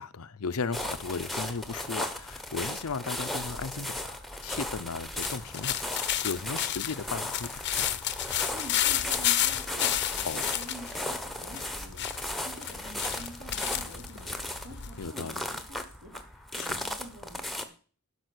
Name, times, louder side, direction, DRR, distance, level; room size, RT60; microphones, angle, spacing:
voice 1, 0.0-7.9 10.2-10.5 15.0-15.4 16.5-16.8, left 4 dB, 80° left, 0.7 m, -36 dB
sound 1, 0.7-17.6, left 1 dB, ahead, 1.1 m, -36 dB
sound 2, 5.2-15.1, left 12 dB, 50° left, 0.8 m, -31 dB
voice 2, 8.5-17.7, right 1 dB, 65° right, 4.7 m, -48 dB
12.0 x 5.5 x 8.3 m
head